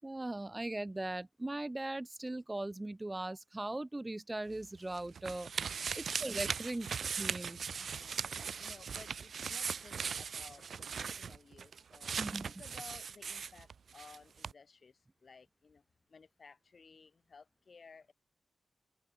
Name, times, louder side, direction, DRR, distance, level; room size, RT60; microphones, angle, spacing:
voice 1, 0.0-5.5 5.9-7.6 12.2-12.5, right 2 dB, 20° right, 6.2 m, -39 dB
sound 1, 4.5-14.2 14.4-14.5, right 6 dB, 80° right, 1.7 m, -39 dB
voice 2, 5.7-6.1 7.8-15.8 16.1-18.1, left 5 dB, 60° left, 7.0 m, -57 dB
open air
wide cardioid pair, 85°, 0 cm